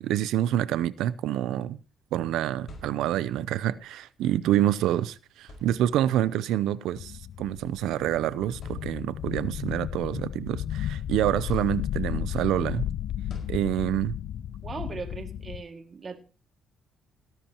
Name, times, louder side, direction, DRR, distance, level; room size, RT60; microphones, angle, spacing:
voice 1, 0.0-1.8 2.1-12.9 13.5-14.2, right 12 dB, 90° right, 0.6 m, -27 dB
sound 1, 2.7-3.5 4.7-4.9 5.4-6.2 7.3-7.5 8.0-8.1 8.5-9.4 9.9-10.9 11.5-12.3 13.3-14.2, left 2 dB, 55° left, 4.9 m, -48 dB
sound 2, 6.9-15.6, left 11 dB, 70° left, 0.5 m, -34 dB
voice 2, 14.6-16.2, right 4 dB, 40° right, 2.2 m, -38 dB
18.0 x 11.0 x 3.0 m
cardioid pair, 90°, 0 cm